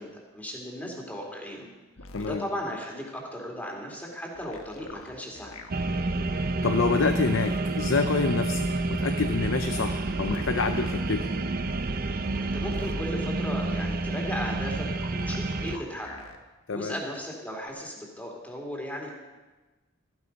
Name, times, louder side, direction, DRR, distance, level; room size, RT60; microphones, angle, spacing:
voice 1, 0.0-1.7 2.2-5.5 12.4-14.9 15.1-16.2 16.7-19.1, equal, 10° left, 0 dB, 2.7 m, -36 dB
sound 1, 2.0-2.4 4.3-5.7 7.0-7.7 9.7-11.0 12.3-13.0 15.0-16.4 17.7-17.8, left 3 dB, 85° left, 1.3 m, -45 dB
sound 2, 5.7-15.8, right 2 dB, 45° right, 0.7 m, -29 dB
voice 2, 6.6-11.3 16.7-16.9, left 4 dB, 65° left, 8 dB, 0.6 m, -27 dB
14.5 x 12.5 x 5.3 m, 1.2 s
head